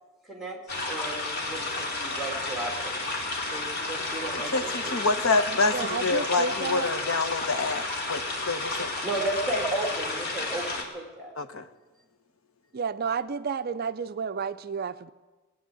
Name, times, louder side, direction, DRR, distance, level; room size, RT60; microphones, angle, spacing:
sound 1, 0.7-10.8, left 2 dB, 50° left, 2.5 m, -32 dB
voice 1, 0.9-3.0 3.5-5.0 9.0-11.3, right 2 dB, ahead, 0 dB, 2.8 m, -34 dB
voice 2, 4.9-5.7 6.0-8.2 8.5-8.9 11.4-11.6, left 3 dB, 70° left, 9 dB, 1.0 m, -26 dB
voice 3, 5.7-6.9 7.5-7.6 12.7-15.1, right 6 dB, 45° right, 12 dB, 0.4 m, -31 dB
19.5 x 9.2 x 7.7 m, 1.2 s
head